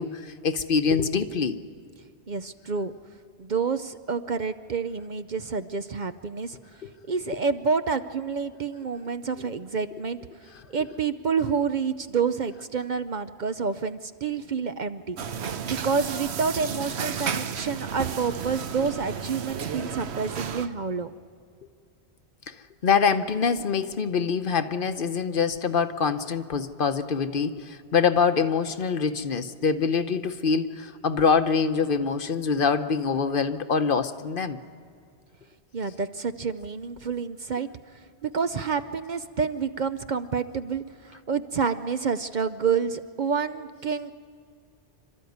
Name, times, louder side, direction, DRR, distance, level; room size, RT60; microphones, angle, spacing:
voice 1, 0.0-1.6 6.8-6.9 22.5-22.6 22.8-34.6, left 5 dB, 55° left, 10 dB, 1.0 m, -25 dB
voice 2, 2.3-2.9 3.4-6.6 7.1-10.2 10.7-15.2 15.7-21.1 35.7-44.1, right 5 dB, 50° right, 10 dB, 0.7 m, -28 dB
sound 1, 15.2-20.7, right 7 dB, 75° right, 1.1 m, -32 dB
27.5 x 13.0 x 9.3 m, 2.3 s
omnidirectional pair, 1.1 m